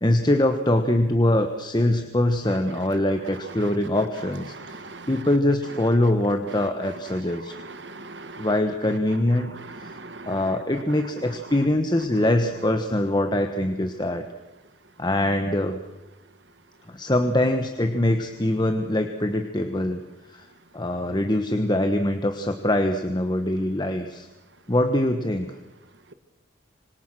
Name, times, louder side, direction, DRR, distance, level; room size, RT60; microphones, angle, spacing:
voice 1, 0.0-4.8 5.1-7.5 8.4-9.5 9.8-10.0 10.3-14.2 15.0-15.8 16.9-20.0 20.3-20.5 20.7-24.3 24.7-25.5, left 1 dB, 20° left, 6 dB, 1.3 m, -23 dB
voice 2, 4.5-5.1 7.1-7.2 7.5-8.5 9.5-10.4, right 3 dB, 60° right, 11 dB, 1.6 m, -40 dB
26.5 x 26.0 x 6.2 m, 1.0 s
head